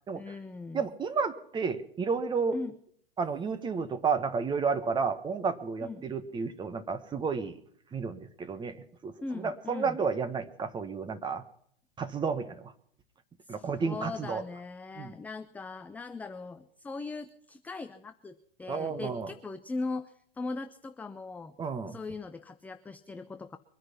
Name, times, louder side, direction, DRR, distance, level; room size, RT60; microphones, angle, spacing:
voice 1, 0.1-0.9 2.5-2.8 5.8-6.1 9.2-10.0 13.4-21.5 21.9-23.6, left 3 dB, 5° left, 9 dB, 0.6 m, -39 dB
voice 2, 0.7-2.6 3.2-7.6 7.9-11.4 12.0-12.7 13.5-14.4 15.0-15.1 18.7-19.3 21.6-22.0, right 5 dB, 15° right, 11 dB, 1.4 m, -31 dB
23.5 x 9.7 x 5.8 m, 0.63 s
hypercardioid pair, 115°, 30 cm